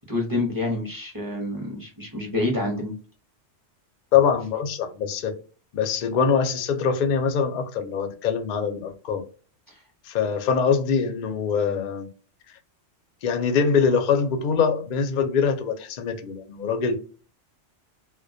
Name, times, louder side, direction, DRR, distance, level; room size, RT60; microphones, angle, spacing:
voice 1, 0.1-2.9 9.7-9.8, left 2 dB, 25° right, 0.5 m, -28 dB
voice 2, 4.1-5.4 5.7-9.2 10.0-12.1 13.2-17.0, left 6 dB, 60° left, 0.5 m, -23 dB
2.2 x 2.2 x 2.6 m
omnidirectional pair, 1.2 m